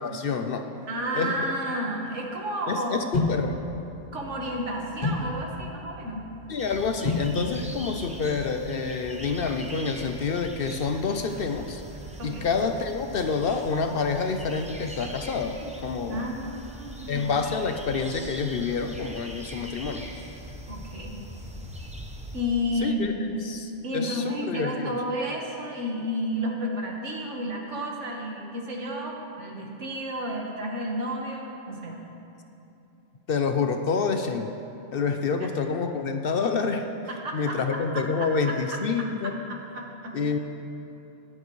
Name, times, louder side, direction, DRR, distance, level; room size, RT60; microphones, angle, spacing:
voice 1, 0.0-0.7 1.1-1.5 2.7-3.6 6.5-11.8 12.2-16.2 17.1-20.1 22.8-23.1 23.5-23.6 23.9-24.9 33.3-34.5 34.9-36.9 37.3-39.4 40.1-40.4, left 5 dB, 60° left, 6 dB, 0.7 m, -28 dB
voice 2, 0.9-3.1 4.1-6.3 12.2-12.5 16.1-17.4 20.7-21.2 22.3-23.4 23.8-32.0 37.1-40.4, equal, 80° right, -1 dB, 1.8 m, -32 dB
sound 1, 3.1-9.2, left 2 dB, 40° left, 1.0 m, -33 dB
sound 2, 6.6-22.4, right 1 dB, 5° right, 0.8 m, -41 dB
21.0 x 7.6 x 3.1 m, 3.0 s
omnidirectional pair, 1.2 m